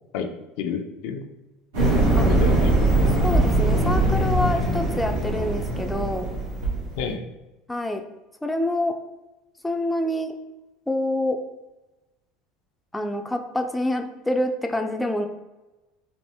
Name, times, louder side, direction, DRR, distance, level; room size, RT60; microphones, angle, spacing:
voice 1, 0.6-1.2 2.2-3.1 7.0-7.3, left 6 dB, 70° left, 5 dB, 0.5 m, -30 dB
sound 1, 1.7-7.0, right 2 dB, 90° right, 1.4 m, -21 dB
voice 2, 3.2-6.3 7.7-8.0 8.4-9.0 9.6-10.3 10.9-11.4 12.9-15.3, left 1 dB, 5° left, 4 dB, 0.4 m, -26 dB
4.2 x 2.6 x 3.4 m, 1.1 s
supercardioid pair, 100°, 0 cm